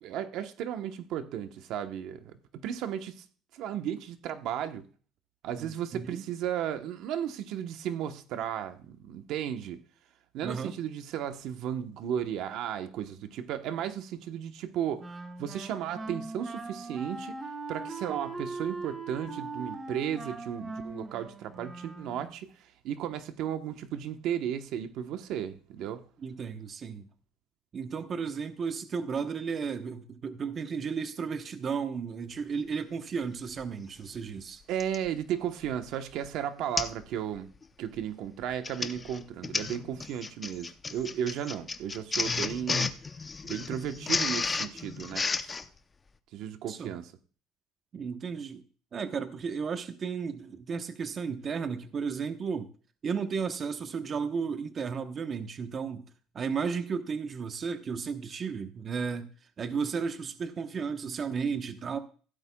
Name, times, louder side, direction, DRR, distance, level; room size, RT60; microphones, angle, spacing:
voice 1, 0.0-3.2 3.5-4.8 5.4-9.8 10.3-17.4 17.7-22.5 22.8-26.0 34.7-37.5 37.8-42.9 43.4-45.5 46.3-47.1, right 9 dB, 65° right, 1.0 m, -34 dB
voice 2, 5.6-6.2 10.4-10.7 26.2-27.1 27.7-34.6 46.7-46.9 47.9-48.6 48.9-52.7 53.0-56.1 56.3-59.3 59.6-62.0, right 6 dB, 35° right, 1.0 m, -34 dB
Wind instrument woodwind instrument, 15.0-22.4, right 3 dB, 20° right, 1.5 m, -40 dB
Printer, 33.6-33.7 34.8-35.1 35.6-35.9 36.2-36.3 36.8-37.0 37.4-37.6 38.4-45.7, left 4 dB, 20° left, 0.7 m, -32 dB
16.0 x 12.5 x 2.3 m
cardioid pair, 135°, 0 cm